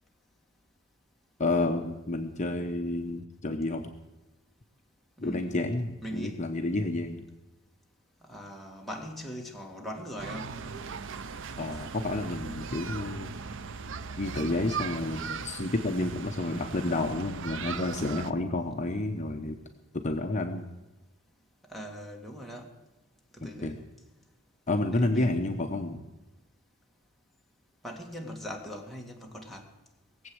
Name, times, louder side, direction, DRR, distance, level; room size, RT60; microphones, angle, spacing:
voice 1, 1.4-3.9 5.2-7.2 11.6-13.3 14.2-19.6 19.9-20.7 23.4-23.7 24.7-26.0, left 2 dB, 35° left, 1.0 m, -30 dB
voice 2, 5.2-5.7 6.0-6.4 8.2-10.5 21.7-22.7 23.4-23.9 24.9-25.6 27.8-29.7, equal, ahead, 2.2 m, -41 dB
sound 1, 10.2-18.3, right 5 dB, 65° right, 0.7 m, -38 dB
20.0 x 8.1 x 7.9 m
head